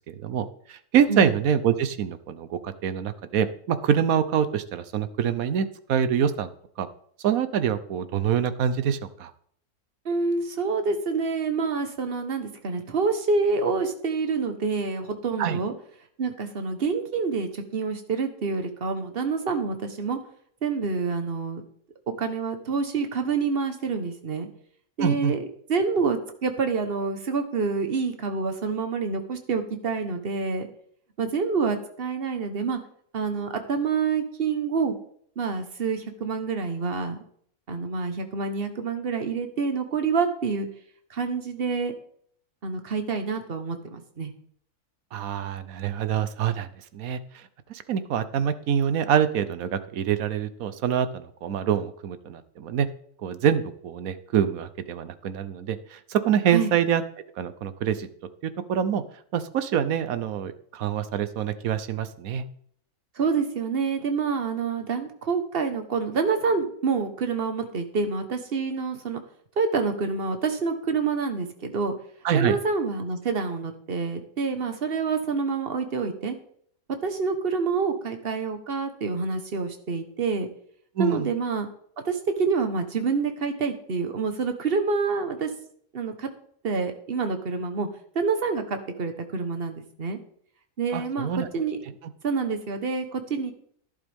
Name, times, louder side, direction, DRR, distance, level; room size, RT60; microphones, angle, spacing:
voice 1, 0.1-6.5 6.8-6.9 7.2-9.3 15.4-15.6 25.0-25.3 45.1-52.9 53.2-57.0 57.4-58.1 58.4-59.0 59.3-62.4 72.2-72.6 81.0-81.3 90.9-91.5, right 8 dB, 70° right, 12 dB, 1.2 m, -25 dB
voice 2, 10.0-15.7 16.2-20.2 20.6-21.6 22.2-24.5 25.0-25.4 25.7-30.7 31.2-32.8 33.1-35.0 35.4-37.2 37.7-40.7 41.1-41.9 42.6-44.3 56.5-56.7 63.2-69.2 69.6-71.9 72.3-76.4 77.0-80.5 81.0-81.7 82.0-85.5 85.9-86.3 86.6-87.9 88.1-90.2 90.8-91.8 92.2-93.5, right 4 dB, 40° right, 7 dB, 1.3 m, -27 dB
12.0 x 11.0 x 3.5 m, 0.62 s
omnidirectional pair, 1.6 m